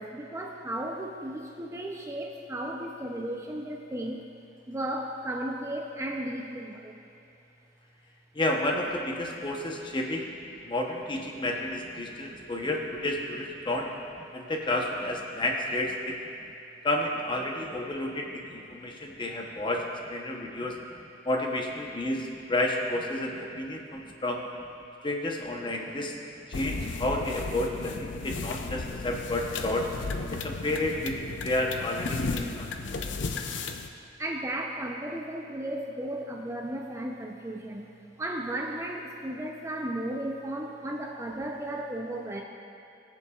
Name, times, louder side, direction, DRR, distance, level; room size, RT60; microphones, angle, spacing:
voice 1, 0.0-4.2 4.7-7.0 9.8-9.9 11.3-11.5 11.9-12.5 13.6-13.7 15.3-15.4 18.3-19.3 20.4-21.0 23.9-24.1 25.9-26.2 26.9-27.0 28.2-28.3 34.2-37.9 38.2-42.4, right 1 dB, 15° right, 1 dB, 0.5 m, -36 dB
voice 2, 8.3-10.3 10.6-13.9 14.3-16.2 16.8-20.8 21.2-24.5 25.0-26.2 26.5-29.9 30.4-31.2 31.4-33.0, left 1 dB, 25° left, 1 dB, 0.8 m, -31 dB
sound 1, 26.5-33.9, left 4 dB, 80° left, 0.5 m, -34 dB
20.0 x 7.0 x 2.3 m, 2.7 s
head